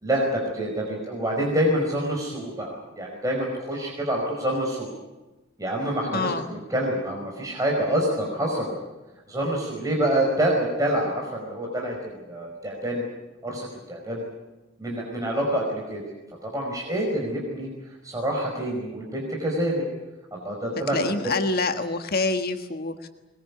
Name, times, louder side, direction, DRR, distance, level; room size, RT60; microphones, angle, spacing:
voice 1, 0.0-4.9 5.6-8.7 9.3-13.1 13.4-14.2 14.8-16.0 16.4-17.7 18.0-19.8 20.3-21.0, right 1 dB, 15° right, -1 dB, 5.1 m, -27 dB
voice 2, 6.1-6.5 20.9-23.1, left 3 dB, 50° left, 6 dB, 1.6 m, -26 dB
22.5 x 21.5 x 8.4 m, 1.1 s
head